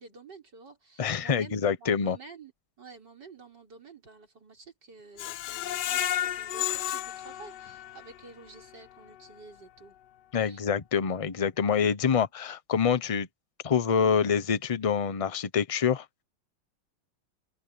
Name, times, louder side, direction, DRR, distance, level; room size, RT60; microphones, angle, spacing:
voice 1, 0.0-2.5 2.8-10.0 10.4-10.6 12.0-12.2, right 4 dB, 70° right, 5.2 m, -50 dB
voice 2, 1.0-2.2 10.3-13.3 13.6-16.2, left 6 dB, 30° left, 0.6 m, -26 dB
Screech, 5.2-8.2 8.6-8.7 9.1-9.2, left 12 dB, 75° left, 1.3 m, -32 dB
open air
omnidirectional pair, 1.9 m